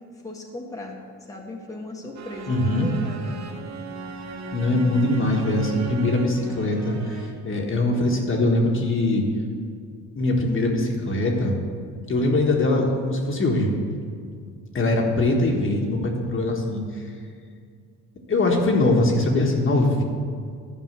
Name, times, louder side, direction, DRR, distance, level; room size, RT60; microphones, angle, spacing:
voice 1, 0.1-1.0 1.3-3.4, left 2 dB, 10° left, -1 dB, 1.3 m, -37 dB
sound 1, 2.1-7.6, right 3 dB, 65° right, 1.0 m, -37 dB
voice 2, 2.5-2.9 4.5-9.2 10.1-11.6 12.1-13.7 14.7-17.0 18.3-20.0, left 2 dB, 45° left, 1 dB, 1.5 m, -22 dB
10.5 x 5.3 x 6.7 m, 2.2 s
cardioid pair, 90°, 30 cm